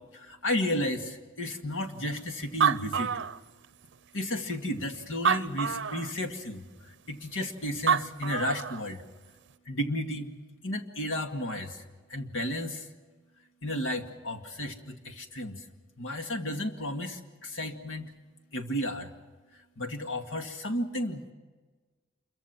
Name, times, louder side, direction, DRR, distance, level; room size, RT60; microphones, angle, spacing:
voice 1, 0.1-3.1 4.1-9.0 9.7-10.3 10.6-11.8 12.1-12.9 13.6-15.6 16.0-18.1 18.5-19.1 19.8-21.2, left 1 dB, 80° left, 4 dB, 2.2 m, -33 dB
Animal, 2.2-2.3 2.4-3.9 4.5-4.6 5.1-6.1 7.6-7.7 7.9-8.8, right 6 dB, 65° right, 0.6 m, -27 dB
27.5 x 23.5 x 6.1 m, 1.4 s
head